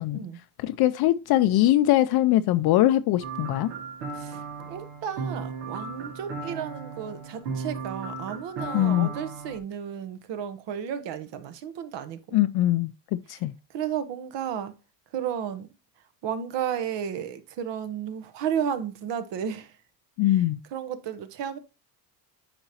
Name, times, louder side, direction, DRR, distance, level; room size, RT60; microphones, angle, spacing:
voice 1, 0.6-3.7 8.7-9.1 12.3-13.5 20.2-20.6, left 14 dB, 55° left, 0.5 m, -22 dB
sound 1, 3.2-9.6, right 4 dB, 80° right, 1.8 m, -36 dB
voice 2, 4.1-12.4 13.3-13.4 13.7-14.7 15.1-15.7 16.2-19.8 20.3-20.4 20.7-21.6, right 8 dB, 65° right, 1.2 m, -33 dB
8.9 x 5.3 x 2.9 m
supercardioid pair, 85°, 47 cm